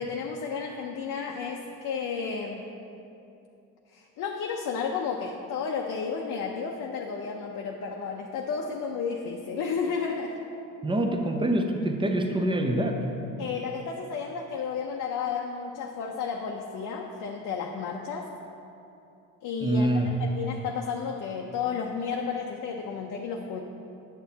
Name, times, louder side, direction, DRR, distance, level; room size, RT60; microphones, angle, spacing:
voice 1, 0.0-2.6 3.9-10.3 13.4-18.3 19.4-23.6, left 5 dB, 50° left, 0 dB, 0.7 m, -32 dB
voice 2, 10.8-13.0 19.6-20.1, right 1 dB, 10° right, 3 dB, 0.8 m, -25 dB
8.9 x 7.2 x 2.9 m, 2.7 s
hypercardioid pair, 60°, 41 cm